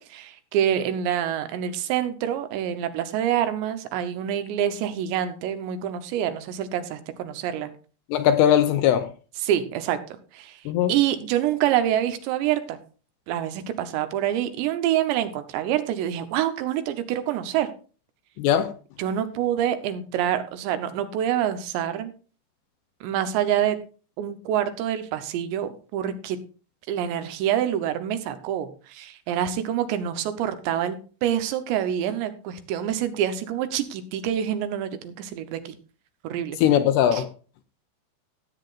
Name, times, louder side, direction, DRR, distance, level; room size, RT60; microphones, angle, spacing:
voice 1, 0.0-7.7 9.4-10.0 10.3-10.6 10.9-12.8 13.3-17.7 19.0-22.1 23.0-23.8 24.2-26.4 26.9-35.7 36.2-36.6 37.1-37.2, right 10 dB, 80° right, 3.0 m, -26 dB
voice 2, 8.1-9.1 10.7-10.9 18.4-18.7 36.6-37.3, left 10 dB, 80° left, 2.5 m, -19 dB
17.0 x 8.7 x 2.5 m
omnidirectional pair, 5.2 m